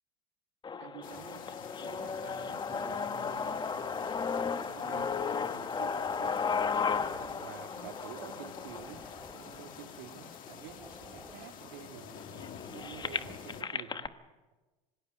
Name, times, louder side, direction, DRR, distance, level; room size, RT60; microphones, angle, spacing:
sound 1, 0.6-10.6 11.3-11.4 11.6-14.1, left 5 dB, 25° left, 1.0 m, -35 dB
voice 1, 0.8-1.5 1.8-9.0 9.3-14.1, right 10 dB, 70° right, 5 dB, 2.4 m, -50 dB
sound 2, 1.0-13.6, left 8 dB, 50° left, 1.8 m, -49 dB
sound 3, 6.6-13.9, left 1 dB, 5° left, 3.2 m, -55 dB
26.0 x 18.5 x 6.5 m, 1.2 s
hypercardioid pair, 85°, 18 cm